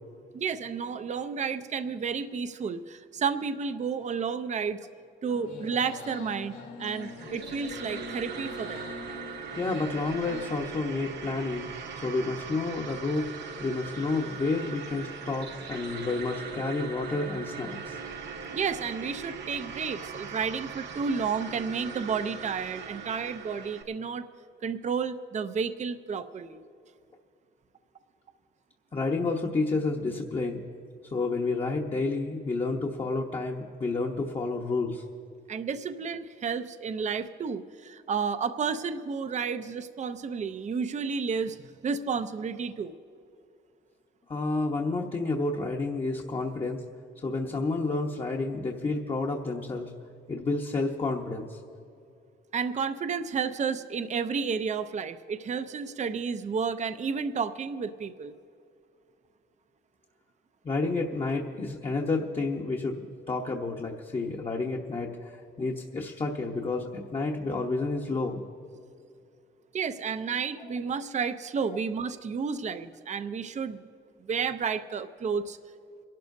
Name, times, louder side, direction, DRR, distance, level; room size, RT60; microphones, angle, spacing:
voice 1, 0.3-4.8 5.2-8.9 18.5-24.3 24.6-26.6 35.5-42.9 52.5-58.3 69.7-73.8 74.2-75.6, right 6 dB, 35° right, 10 dB, 0.6 m, -31 dB
sound 1, 5.3-10.5, left 4 dB, 75° left, 3.3 m, -43 dB
dynamic space, 6.8-23.8, right 5 dB, 60° right, 1.2 m, -40 dB
voice 2, 9.6-11.7 12.0-13.3 13.6-18.0 28.9-30.6 31.0-35.0 44.3-46.8 47.2-49.9 50.3-51.6 60.6-68.4 70.6-70.7, left 3 dB, 30° left, -1 dB, 1.0 m, -30 dB
28.0 x 12.0 x 2.7 m, 2.4 s
cardioid pair, 90°, 20 cm